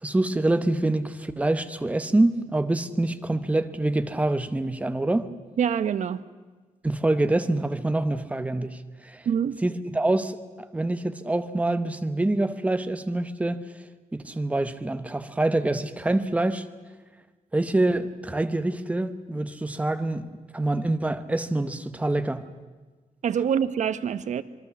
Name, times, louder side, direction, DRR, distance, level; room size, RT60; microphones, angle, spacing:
voice 1, 0.0-5.3 6.8-9.3 9.6-13.6 14.1-16.7 17.5-22.5, right 2 dB, 10° right, 1.0 m, -26 dB
voice 2, 5.6-6.2 9.2-9.6 23.2-24.4, right 8 dB, 60° right, 0.9 m, -25 dB
26.5 x 22.0 x 7.1 m
wide cardioid pair, 165°, 14 cm